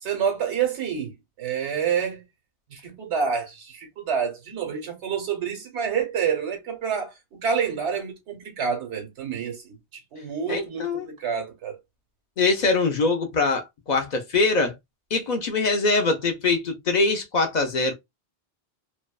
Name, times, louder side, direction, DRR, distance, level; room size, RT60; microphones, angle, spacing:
voice 1, 0.0-2.2 2.7-9.8 10.1-11.8, right 7 dB, 90° right, 1.2 m, -28 dB
voice 2, 10.5-11.1 12.4-14.7 15.1-17.9, left 3 dB, 55° left, 0.5 m, -23 dB
2.6 x 2.1 x 2.3 m
omnidirectional pair, 1.1 m